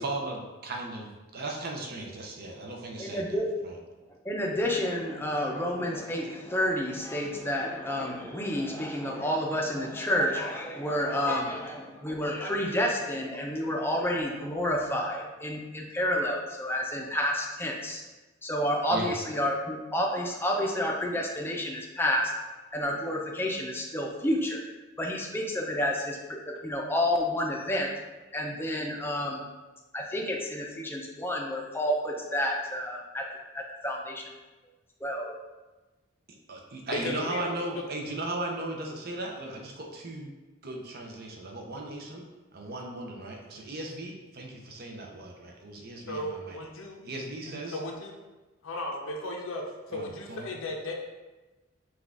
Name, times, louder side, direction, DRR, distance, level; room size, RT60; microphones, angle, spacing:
voice 1, 0.0-3.3 3.6-3.8 18.9-19.1 36.5-40.3 40.6-42.2 42.5-46.6 47.0-47.8 49.9-50.5, right 2 dB, 50° right, 1 dB, 0.7 m, -37 dB
voice 2, 3.0-3.5 4.2-18.0 18.4-22.3 22.7-24.6 25.0-27.9 28.3-29.4 29.9-33.2 33.5-34.3 35.0-35.4, left 1 dB, 10° left, -1 dB, 0.6 m, -30 dB
voice 3, 36.9-37.8 46.1-47.1 47.4-48.1 48.6-50.9, left 1 dB, 75° left, 1 dB, 0.7 m, -36 dB
6.0 x 2.4 x 3.5 m, 1.2 s
head